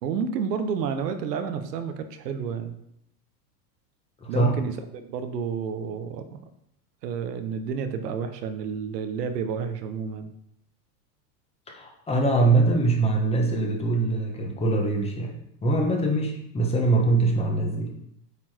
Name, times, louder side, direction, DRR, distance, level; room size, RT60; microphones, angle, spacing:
voice 1, 0.0-2.8 4.3-6.4 7.0-10.3, right 6 dB, 85° right, 8 dB, 1.2 m, -30 dB
voice 2, 4.2-4.5 11.7-17.9, right 2 dB, 10° left, 1 dB, 1.3 m, -23 dB
8.4 x 4.5 x 4.5 m, 0.74 s
supercardioid pair, 140°, 48 cm